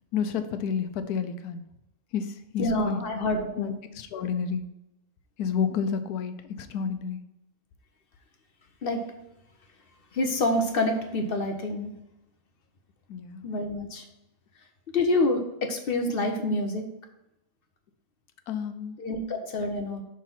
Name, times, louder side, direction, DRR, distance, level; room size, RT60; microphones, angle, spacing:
voice 1, 0.1-1.6 2.1-3.0 3.6-4.6 5.4-7.2 13.1-13.4 18.5-19.0, left 7 dB, 85° left, 9 dB, 1.2 m, -30 dB
voice 2, 2.6-3.7 8.8-9.0 10.1-11.9 13.4-14.0 14.9-16.9 19.0-20.0, left 2 dB, 50° left, 5 dB, 0.8 m, -27 dB
6.2 x 3.7 x 5.7 m, 0.88 s
omnidirectional pair, 1.6 m